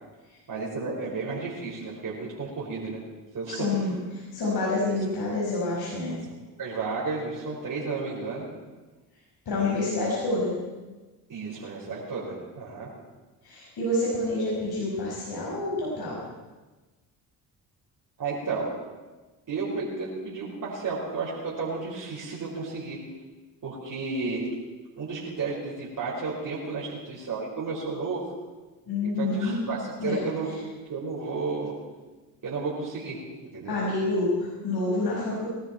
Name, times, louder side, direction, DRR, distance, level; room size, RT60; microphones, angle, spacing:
voice 1, 0.5-3.0 3.3-3.7 5.9-6.0 6.6-8.5 9.6-9.9 11.3-12.9 18.2-18.7 19.5-23.0 23.6-24.5 25.0-28.3 29.0-30.5 30.9-31.7 32.4-33.8, right 4 dB, 45° right, -7 dB, 5.5 m, -32 dB
voice 2, 3.5-6.1 9.5-10.5 13.4-16.2 28.9-29.6 30.0-30.2 33.7-35.5, left 2 dB, 60° left, -5 dB, 5.7 m, -28 dB
21.0 x 13.0 x 4.5 m, 1.2 s
supercardioid pair, 60°, 42 cm